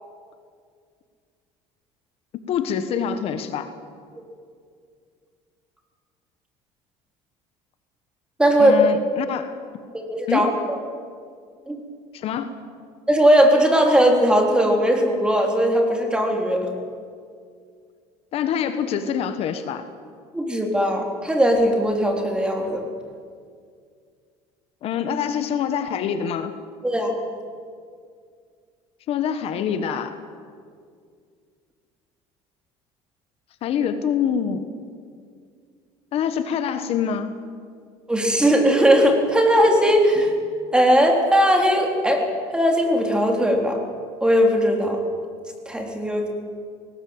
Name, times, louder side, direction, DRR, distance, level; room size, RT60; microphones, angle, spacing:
voice 1, 2.5-3.7 8.6-9.6 10.3-10.5 12.1-12.6 18.3-19.9 24.8-26.5 29.1-30.2 33.6-34.7 36.1-37.4, left 8 dB, 55° left, 10 dB, 1.4 m, -25 dB
voice 2, 8.4-8.7 9.9-10.8 11.7-11.8 13.1-16.7 20.3-22.8 26.8-27.1 38.1-40.3 40.7-42.3 42.5-43.8 44.2-45.0 45.7-46.3, equal, 5° right, 2 dB, 3.7 m, -19 dB
20.5 x 19.0 x 8.8 m, 2.2 s
cardioid pair, 125°, 12 cm